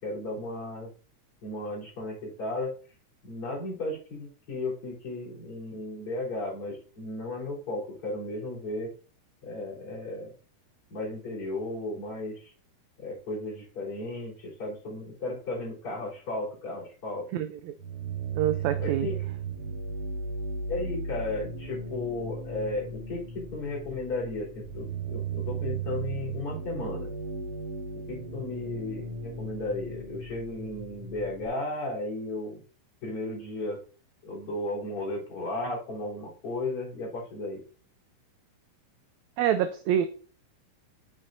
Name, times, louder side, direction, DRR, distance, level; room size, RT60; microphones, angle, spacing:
voice 1, 0.0-0.9 1.4-2.7 3.2-8.9 9.4-10.3 10.9-12.5 13.0-17.3 18.8-19.2 20.7-27.1 28.1-32.6 33.0-33.8 34.2-37.6, left 2 dB, 45° left, -7 dB, 4.7 m, -34 dB
voice 2, 17.3-17.8 18.3-19.1 39.4-40.1, right 10 dB, 80° right, 10 dB, 1.6 m, -26 dB
sound 1, 17.8-31.5, right 4 dB, 65° right, 1.5 m, -36 dB
7.7 x 7.5 x 2.7 m, 0.39 s
omnidirectional pair, 3.6 m